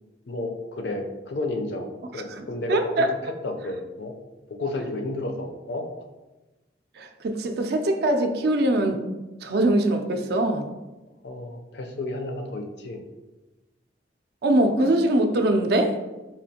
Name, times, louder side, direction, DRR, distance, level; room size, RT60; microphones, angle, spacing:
voice 1, 0.3-3.1 3.4-4.1 4.5-5.9 11.2-13.0, left 2 dB, 65° left, 4 dB, 0.5 m, -31 dB
voice 2, 2.4-3.3 7.0-9.0 9.4-10.7 14.4-16.0, right 1 dB, 60° right, 5 dB, 0.4 m, -22 dB
4.2 x 2.5 x 2.7 m, 1.1 s
head